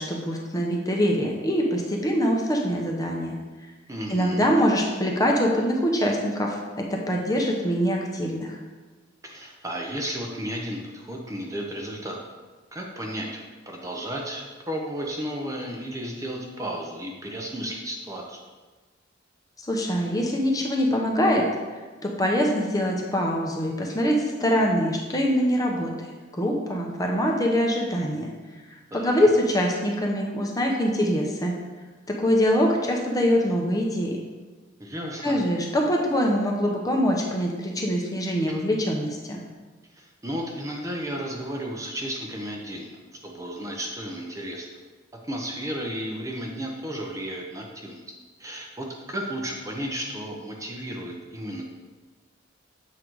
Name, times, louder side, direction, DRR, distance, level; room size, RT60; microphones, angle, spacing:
voice 1, 0.0-3.4 4.1-8.6 19.7-21.4 22.0-25.9 26.4-28.3 28.9-31.5 32.1-34.2 35.2-39.4, equal, 20° left, 0 dB, 0.8 m, -24 dB
voice 2, 3.9-4.5 9.2-12.2 12.7-18.4 28.9-29.3 34.8-35.4 38.5-38.6 40.0-43.0 43.2-44.7 45.3-48.0 48.4-51.6, equal, 15° right, 0 dB, 0.7 m, -33 dB
7.6 x 3.9 x 4.6 m, 1.3 s
head